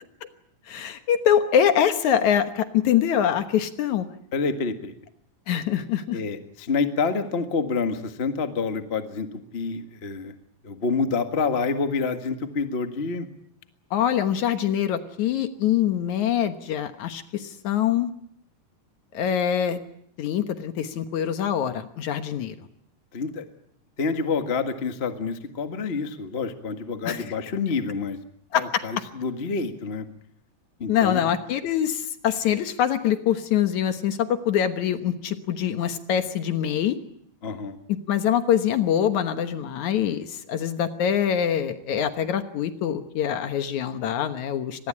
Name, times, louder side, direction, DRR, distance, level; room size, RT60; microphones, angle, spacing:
voice 1, 0.7-4.1 5.5-6.2 13.9-18.1 19.1-19.8 20.2-22.6 27.0-27.2 28.5-28.6 30.9-37.0 38.1-44.9, left 9 dB, 65° left, 9 dB, 2.4 m, -24 dB
voice 2, 4.3-4.9 6.1-10.3 10.6-13.3 23.1-23.4 24.0-28.2 28.5-30.0 30.8-31.2 37.4-37.8, left 4 dB, 30° left, 7 dB, 1.1 m, -27 dB
25.0 x 20.5 x 8.7 m, 0.69 s
omnidirectional pair, 3.9 m